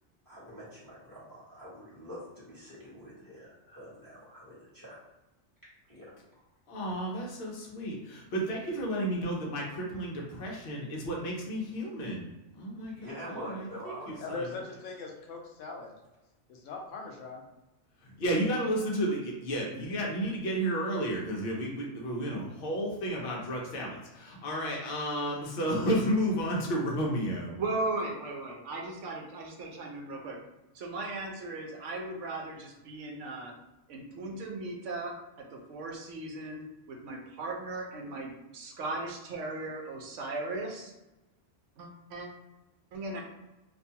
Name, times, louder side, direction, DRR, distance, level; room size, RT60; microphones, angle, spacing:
voice 1, 0.2-5.0 5.9-6.1 12.9-14.4 14.7-14.8, equal, 20° left, -10 dB, 1.1 m, -45 dB
voice 2, 6.7-12.3 12.5-12.9 13.9-14.0 18.2-27.6, equal, 60° left, -2 dB, 0.8 m, -32 dB
voice 3, 14.2-15.9 16.5-17.5, left 4 dB, 85° left, 1 dB, 1.0 m, -40 dB
voice 4, 27.6-30.4 30.7-33.5 33.9-35.1 35.5-40.9 41.8-42.3 42.9-43.2, right 2 dB, 75° right, 1 dB, 0.9 m, -37 dB
2.6 x 2.3 x 2.7 m, 1.0 s
omnidirectional pair, 1.2 m